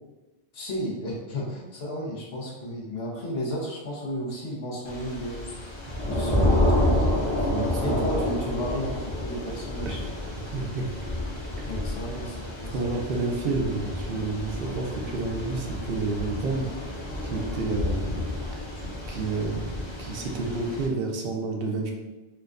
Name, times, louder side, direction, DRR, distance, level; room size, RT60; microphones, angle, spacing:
voice 1, 0.5-5.7 6.1-10.0 11.7-12.8, equal, 80° left, -3 dB, 1.1 m, -33 dB
Thunder / Rain, 4.9-20.9, left 1 dB, 30° left, 0.7 m, -29 dB
voice 2, 7.4-8.1 9.8-10.0 10.5-10.8 11.6-11.7 12.7-16.7 17.2-18.2 18.8-19.7 20.0-21.9, right 3 dB, 70° right, 0 dB, 0.8 m, -30 dB
4.5 x 2.2 x 2.5 m, 1.1 s
omnidirectional pair, 1.0 m